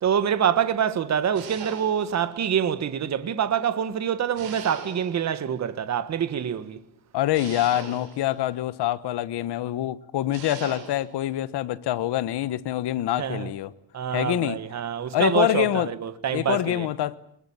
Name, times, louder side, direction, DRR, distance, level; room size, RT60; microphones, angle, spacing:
voice 1, 0.0-6.8 13.2-13.5 13.9-16.9, right 8 dB, 35° right, 1.5 m, -26 dB
sound 1, 1.3-2.3 4.4-5.3 7.3-8.4 10.3-11.1, right 6 dB, 50° right, 7.1 m, -40 dB
voice 2, 7.1-13.7 14.1-14.6 15.1-15.9 16.3-17.2, left 13 dB, 60° left, 1.2 m, -25 dB
25.0 x 21.5 x 8.7 m
cardioid pair, 155°, 46 cm